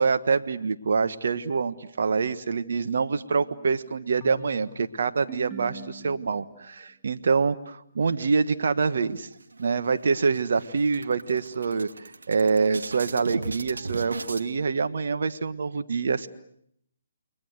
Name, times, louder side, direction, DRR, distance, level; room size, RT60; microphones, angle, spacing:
voice 1, 0.0-9.3 9.6-16.3, right 5 dB, 65° right, 10 dB, 1.5 m, -26 dB
sound 1, 3.1-6.7, right 4 dB, 10° right, 2.4 m, -45 dB
sound 2, 9.1-9.9 10.3-10.4 10.7-14.5, right 3 dB, 85° right, 2.4 m, -37 dB
30.0 x 23.0 x 8.1 m, 0.70 s
hypercardioid pair, 150°, 0 cm